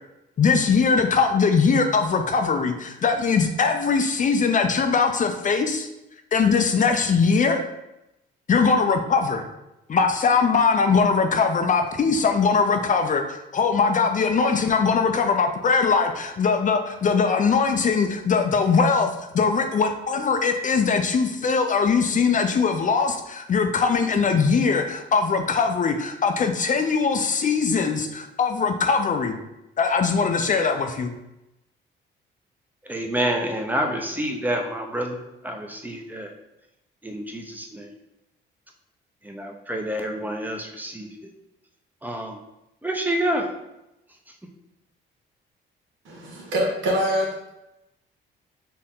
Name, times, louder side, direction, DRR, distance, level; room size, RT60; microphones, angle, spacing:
voice 1, 0.4-5.9 6.3-7.6 8.5-9.4 9.9-29.4 29.8-31.1, left 5 dB, 40° left, 5 dB, 0.5 m, -21 dB
voice 2, 32.8-36.3 37.0-37.9 39.2-41.1 42.0-42.4 42.8-43.5, right 1 dB, 10° right, 2 dB, 0.7 m, -28 dB
voice 3, 46.0-47.5, equal, 75° right, -3 dB, 1.6 m, -25 dB
4.4 x 3.0 x 3.7 m, 0.90 s
cardioid pair, 90°, 20 cm